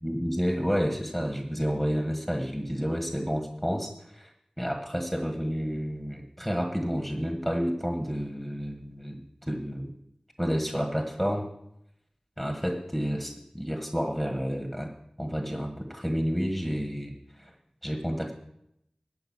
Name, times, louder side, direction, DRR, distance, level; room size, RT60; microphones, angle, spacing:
voice 1, 0.0-4.3 4.6-9.9 10.4-11.5 12.4-14.9 15.2-17.5 17.8-18.3, equal, 5° right, 4 dB, 1.6 m, -30 dB
12.0 x 5.2 x 8.7 m, 0.77 s
wide cardioid pair, 50°, 2 cm